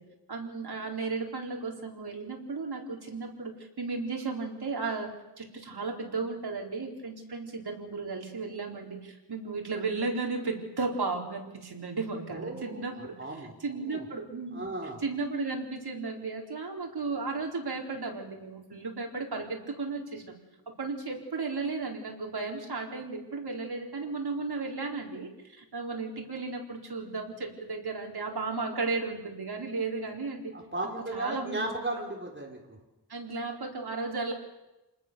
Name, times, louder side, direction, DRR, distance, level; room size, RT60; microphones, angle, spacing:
voice 1, 0.3-5.1 5.4-13.1 13.6-14.7 15.0-20.3 20.8-30.5 31.1-31.6 33.1-34.3, right 3 dB, 65° right, 1 dB, 4.3 m, -34 dB
voice 2, 12.3-14.1 14.5-15.0 30.5-32.8, right 2 dB, 30° right, 0 dB, 4.4 m, -36 dB
28.5 x 20.0 x 6.9 m, 1.0 s
wide cardioid pair, 110°, 41 cm